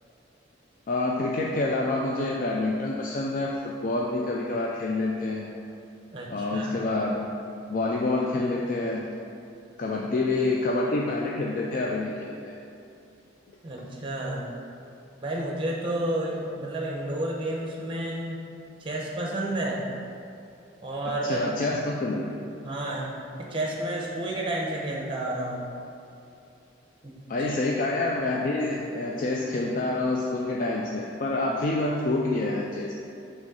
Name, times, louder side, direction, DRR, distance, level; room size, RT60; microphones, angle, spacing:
voice 1, 0.9-5.5 6.3-7.3 7.7-9.1 9.8-12.5 21.2-22.3 27.3-32.9, left 2 dB, 45° left, -2 dB, 0.4 m, -27 dB
voice 2, 6.1-6.7 9.8-9.9 10.2-10.3 13.6-14.5 15.2-18.4 18.8-19.8 20.8-21.5 22.6-23.1 23.4-25.7 27.0-27.6, right 1 dB, 25° right, -2 dB, 0.8 m, -31 dB
6.2 x 3.1 x 5.3 m, 2.7 s
head